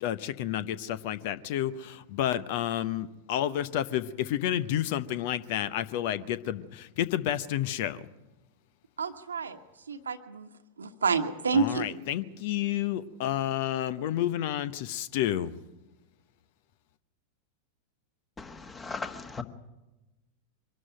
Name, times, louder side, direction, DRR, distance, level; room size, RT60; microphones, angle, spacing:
voice 1, 0.0-8.0 11.5-15.5, left 11 dB, 50° left, 0.8 m, -30 dB
voice 2, 9.0-9.6 9.9-10.5 10.8-11.9, right 4 dB, 70° right, 1.3 m, -28 dB
voice 3, 18.4-19.4, left 4 dB, 15° left, 1.6 m, -38 dB
24.0 x 12.5 x 9.0 m
figure-of-eight pair, 90°, 0 cm